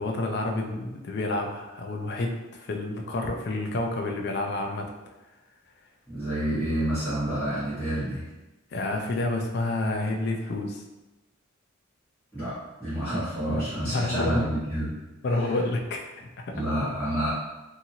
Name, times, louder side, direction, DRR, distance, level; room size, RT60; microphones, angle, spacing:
voice 1, 0.0-4.9 8.7-10.8 13.5-13.6 13.9-14.5 15.2-16.5, left 2 dB, 50° left, 2 dB, 0.4 m, -29 dB
voice 2, 6.1-8.2 12.3-14.9 15.4-15.5 16.5-17.3, right 1 dB, 5° left, -17 dB, 1.1 m, -28 dB
2.7 x 2.5 x 2.8 m, 1.1 s
head